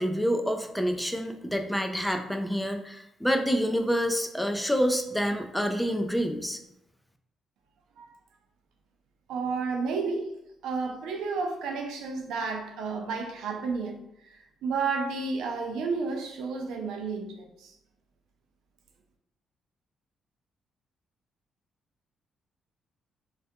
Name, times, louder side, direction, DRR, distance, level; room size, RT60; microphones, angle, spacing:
voice 1, 0.0-6.6, equal, 5° left, 0.3 m, -27 dB
voice 2, 9.3-10.3 10.6-14.0 14.3-17.7, right 4 dB, 85° right, 0.3 m, -31 dB
2.3 x 2.1 x 2.6 m
cardioid pair, 80°, 0 cm